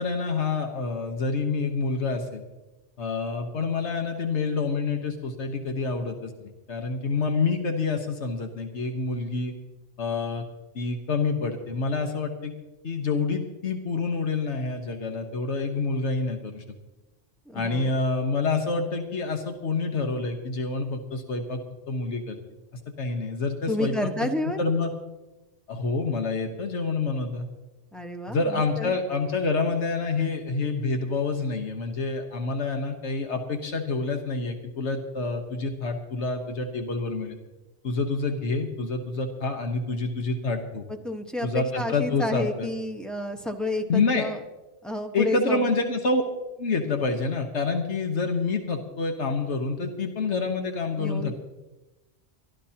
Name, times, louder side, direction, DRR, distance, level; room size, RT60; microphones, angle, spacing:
voice 1, 0.0-2.4 3.0-9.5 10.0-10.4 10.7-12.5 12.8-16.6 17.5-21.6 21.9-22.4 23.0-24.9 25.7-27.5 28.3-37.4 37.8-40.8 41.4-42.7 43.9-44.3 45.1-46.2 46.6-51.3, left 4 dB, 85° left, 4 dB, 1.5 m, -27 dB
voice 2, 17.5-17.9 23.7-24.7 27.9-28.9 41.0-44.4 44.8-45.7 50.9-51.4, left 1 dB, ahead, 4 dB, 1.1 m, -30 dB
24.5 x 12.5 x 2.9 m, 1.1 s
omnidirectional pair, 1.1 m